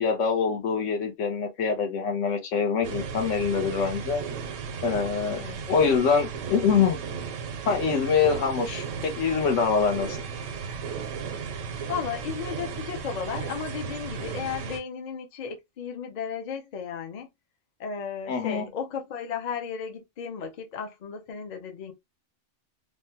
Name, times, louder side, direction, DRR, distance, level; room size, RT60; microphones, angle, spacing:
voice 1, 0.0-4.2 4.8-5.4 5.7-7.0 7.7-10.2 18.3-18.7, left 6 dB, 80° left, 1.2 m, -24 dB
sound 1, 2.8-14.8, right 6 dB, 90° right, 1.0 m, -35 dB
voice 2, 5.3-5.6 11.6-17.3 17.8-21.9, left 7 dB, 45° left, 0.6 m, -34 dB
3.2 x 2.2 x 2.7 m
omnidirectional pair, 1.3 m